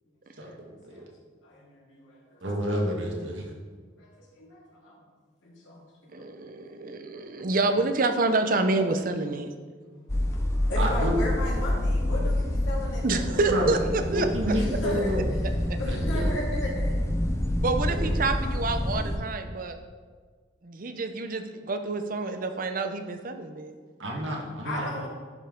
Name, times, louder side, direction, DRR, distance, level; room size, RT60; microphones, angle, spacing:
voice 1, 0.4-1.1 2.4-3.4 10.8-11.2 13.5-13.7 14.1-15.2 15.9-16.4 17.9-18.1 24.0-24.8, equal, 85° right, -1 dB, 1.7 m, -29 dB
voice 2, 1.4-2.4 4.0-4.1 4.4-5.0 5.4-5.8 9.8-10.0 10.3-13.5 14.5-15.2 15.8-17.0 24.6-25.1, left 1 dB, 90° left, -4 dB, 2.3 m, -36 dB
voice 3, 6.1-9.5 13.0-14.3 15.4-15.5 17.6-19.8 20.6-23.7, right 3 dB, 45° right, 7 dB, 0.6 m, -28 dB
sound 1, 10.1-19.2, left 1 dB, 15° left, 0.5 m, -27 dB
11.0 x 5.5 x 3.8 m, 1.5 s
head